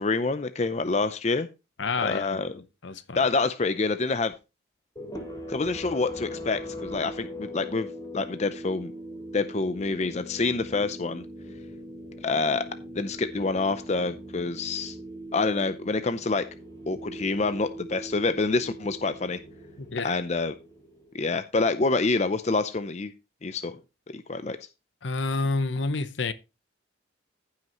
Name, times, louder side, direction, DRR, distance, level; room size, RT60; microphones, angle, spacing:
voice 1, 0.0-1.5 2.0-2.6 3.2-4.3 5.5-7.9 8.1-8.9 9.3-11.2 12.2-12.6 13.0-15.0 15.3-16.4 16.9-19.4 20.0-20.5 21.1-23.1 23.4-23.8 24.1-24.6, left 3 dB, 35° left, 0.5 m, -27 dB
voice 2, 1.8-2.4 2.8-3.2 19.8-20.2 25.0-26.3, left 3 dB, 70° left, 0.8 m, -29 dB
sound 1, 5.0-21.2, equal, 20° left, 3.8 m, -41 dB
15.0 x 5.8 x 3.0 m
head